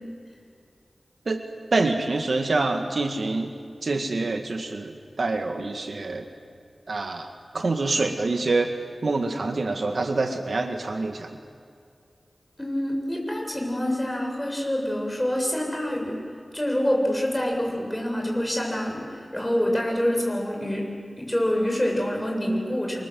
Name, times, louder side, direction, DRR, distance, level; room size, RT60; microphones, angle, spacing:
voice 1, 1.7-3.5 3.8-6.3 6.9-8.7 9.0-11.4, right 3 dB, 65° right, 5 dB, 2.0 m, -26 dB
voice 2, 12.6-16.2 16.5-19.0 19.3-20.8 21.2-23.1, equal, 10° left, 0 dB, 7.3 m, -26 dB
29.0 x 24.5 x 7.9 m, 2.3 s
wide cardioid pair, 75°, 0 cm